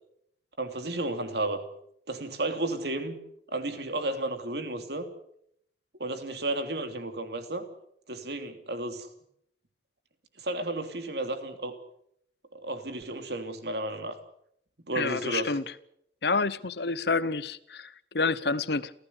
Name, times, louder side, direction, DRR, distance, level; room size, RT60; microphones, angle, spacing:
voice 1, 0.6-1.6 2.1-3.2 3.5-5.1 6.0-7.6 8.1-9.1 10.4-11.7 12.5-14.1 14.8-15.5, right 2 dB, 60° right, 3.1 m, -32 dB
voice 2, 14.9-15.6 16.2-18.9, left 4 dB, 60° left, 1.0 m, -28 dB
28.5 x 15.5 x 8.3 m
head